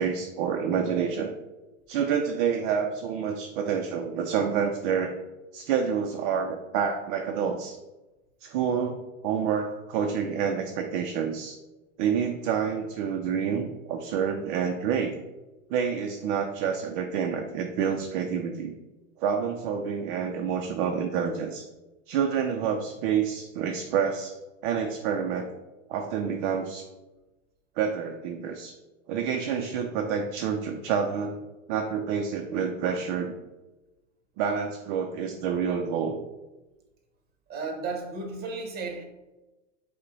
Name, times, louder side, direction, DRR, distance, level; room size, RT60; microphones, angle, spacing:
voice 1, 0.0-1.3 1.9-5.2 5.5-7.8 8.4-11.6 12.0-15.1 15.7-18.7 19.2-21.7 22.1-24.4 24.6-25.5 25.9-26.8 27.8-28.7 29.1-31.4 31.7-33.3 34.4-36.2, right 7 dB, 40° right, 0.4 m, -28 dB
voice 2, 37.5-39.0, right 4 dB, 25° right, 0.9 m, -34 dB
5.2 x 2.2 x 3.9 m
hypercardioid pair, 125°, 39 cm